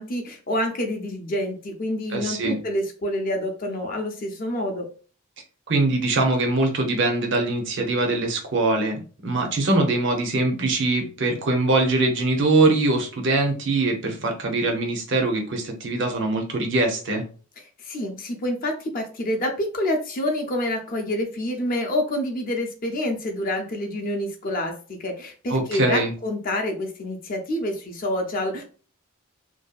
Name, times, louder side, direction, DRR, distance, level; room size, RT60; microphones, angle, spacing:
voice 1, 0.0-4.9 17.8-28.6, left 1 dB, 40° left, 3 dB, 0.5 m, -27 dB
voice 2, 2.1-2.6 5.7-17.2 25.5-26.1, right 2 dB, 55° right, 3 dB, 0.6 m, -22 dB
2.6 x 2.2 x 2.3 m, 0.39 s
head